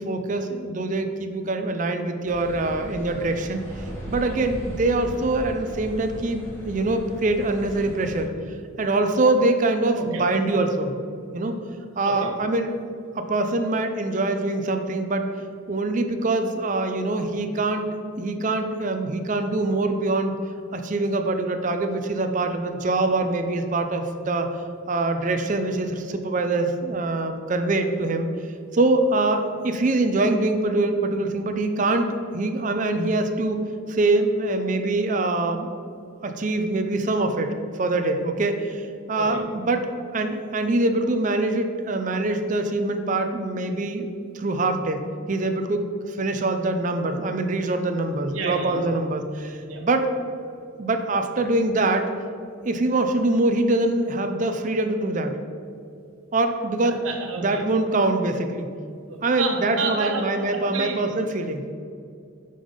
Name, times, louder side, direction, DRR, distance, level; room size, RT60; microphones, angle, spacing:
voice 1, 0.0-8.3 8.8-11.0 11.3-11.6 12.0-12.7 13.1-15.3 15.7-17.9 18.2-20.3 20.7-24.5 24.9-28.3 28.7-33.6 33.9-35.7 36.2-37.5 37.8-39.8 40.1-44.1 44.3-50.1 50.8-52.1 52.7-55.4 56.3-57.0 57.4-58.7 59.2-61.6, right 2 dB, 35° right, 6 dB, 0.5 m, -24 dB
sound 1, 2.3-8.2, equal, 10° left, 1.4 m, -37 dB
voice 2, 48.3-48.8 49.7-49.8 56.8-57.6 59.1-61.0, right 4 dB, 90° right, 1 dB, 1.1 m, -31 dB
5.5 x 5.3 x 5.0 m, 2.4 s
head